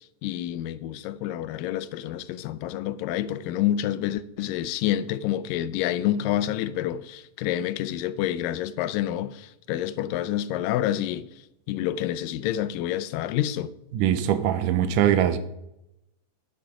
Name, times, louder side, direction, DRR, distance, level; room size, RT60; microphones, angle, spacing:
voice 1, 0.2-11.3 11.7-13.7, left 12 dB, 90° left, 2.2 m, -28 dB
voice 2, 13.9-15.4, right 10 dB, 85° right, 2.1 m, -22 dB
10.5 x 7.0 x 4.9 m
omnidirectional pair, 3.8 m